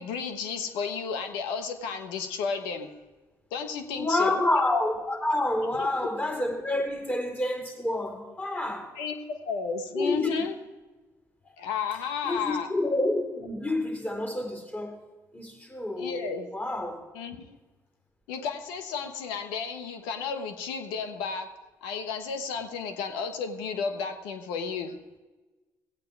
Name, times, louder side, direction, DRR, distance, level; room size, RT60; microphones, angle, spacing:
voice 1, 0.0-2.9 3.5-4.4 5.8-5.9 8.9-9.2 9.4-10.5 11.6-12.7 16.0-16.5 17.1-17.5 18.3-21.5 21.8-25.0, left 5 dB, 85° left, 1.2 m, -32 dB
voice 2, 3.9-8.9 9.9-10.3 11.5-11.6 12.2-15.0 15.3-16.2 16.5-17.0, left 2 dB, 25° left, 4.0 m, -28 dB
17.5 x 8.5 x 4.7 m
hypercardioid pair, 55°, 8 cm